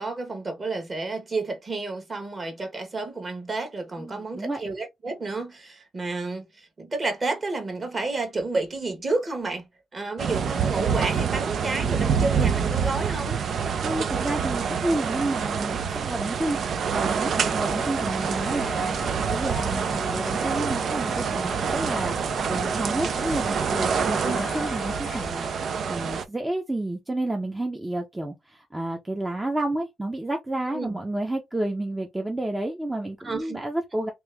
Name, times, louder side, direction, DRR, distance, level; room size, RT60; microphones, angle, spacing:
voice 1, 0.0-13.4 24.2-24.5 30.7-31.0 33.2-33.6, right 3 dB, 30° right, 1.4 m, -31 dB
voice 2, 4.0-4.6 13.8-34.1, right 1 dB, 10° right, 0.7 m, -30 dB
sound 1, 10.2-26.3, right 6 dB, 55° right, 0.5 m, -26 dB
sound 2, 17.7-25.4, left 4 dB, 30° left, 0.3 m, -38 dB
3.0 x 3.0 x 3.4 m
cardioid pair, 90°, 0 cm